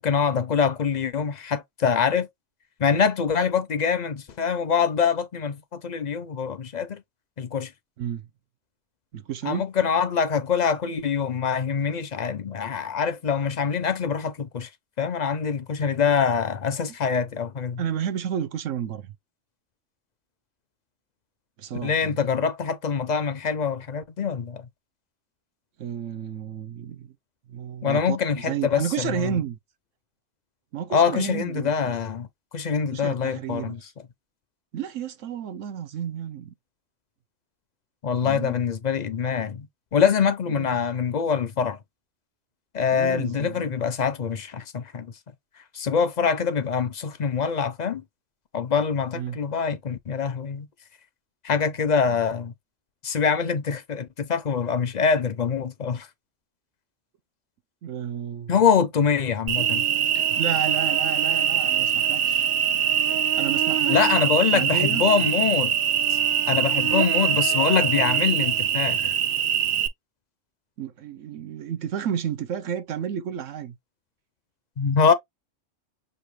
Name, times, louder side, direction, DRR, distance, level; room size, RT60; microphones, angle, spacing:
voice 1, 0.0-2.3 2.8-7.0 7.4-7.7 9.4-14.7 15.0-17.8 21.8-24.7 27.8-29.4 30.9-32.3 32.5-33.8 38.0-41.8 42.7-45.1 45.7-48.0 48.5-50.7 51.4-52.5 53.0-56.1 58.5-59.8 63.9-65.7 66.1-66.2 66.5-69.1 74.8-75.1, left 6 dB, 50° left, 0.5 m, -24 dB
voice 2, 8.0-8.3 9.1-9.7 17.8-19.2 21.6-22.2 25.8-27.1 27.5-29.6 30.7-32.0 32.9-33.9 34.7-36.5 38.2-38.6 40.5-40.7 42.9-43.7 49.1-49.4 52.1-52.2 57.8-58.6 60.1-62.5 63.3-64.0 64.5-65.0 70.8-73.8, right 9 dB, 80° right, 1.1 m, -32 dB
Cricket, 59.5-69.9, right 9 dB, 60° right, 0.6 m, -23 dB
6.5 x 2.6 x 3.1 m
omnidirectional pair, 1.3 m